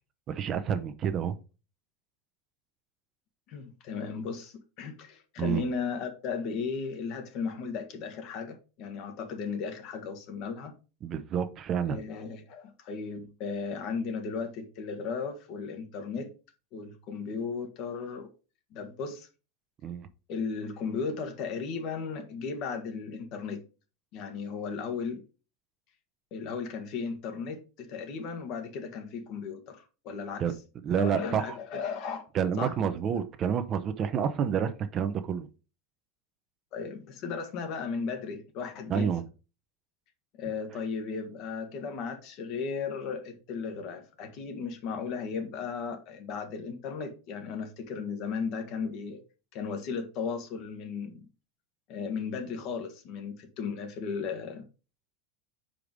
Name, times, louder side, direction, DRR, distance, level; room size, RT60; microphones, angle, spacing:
voice 1, 0.3-1.4 5.4-5.6 11.0-12.0 19.8-20.1 30.4-30.5 30.8-31.6 32.3-35.5 38.9-39.2, right 8 dB, 35° right, 0.7 m, -29 dB
voice 2, 3.5-10.8 11.9-16.3 16.7-18.3 18.7-19.3 20.3-23.6 24.1-25.2 26.3-30.4 31.0-32.2 32.6-32.7 36.7-39.1 40.3-49.2 49.5-51.2 51.9-54.6, left 5 dB, 50° left, 1.6 m, -35 dB
5.1 x 4.7 x 5.2 m
supercardioid pair, 125°, 0 cm